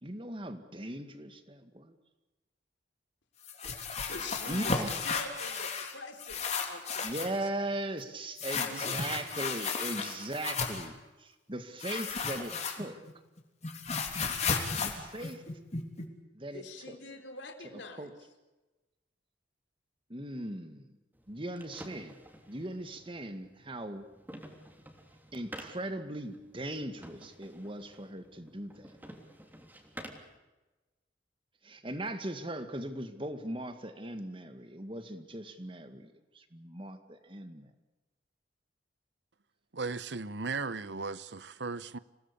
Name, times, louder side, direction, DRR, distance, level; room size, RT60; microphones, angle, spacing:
voice 1, 0.0-1.9 4.5-4.9 7.0-10.9 11.2-13.0 14.8-15.4 16.3-17.0 18.0-18.1 20.1-20.9 21.3-22.2 22.5-24.1 25.3-28.9 31.6-37.7, right 1 dB, 30° right, 2.1 m, -39 dB
sound 1, 3.4-5.9 6.2-7.4 8.4-10.9 11.8-13.1 13.4-16.0, left 5 dB, 35° left, 3.4 m, -34 dB
voice 2, 4.1-7.3 8.6-9.0 16.5-18.1, left 3 dB, 80° left, 3.7 m, -45 dB
sound 2, 21.1-30.4, right 1 dB, 10° right, 3.3 m, -51 dB
voice 3, 39.7-42.0, right 4 dB, 70° right, 0.9 m, -36 dB
27.0 x 18.5 x 8.5 m
head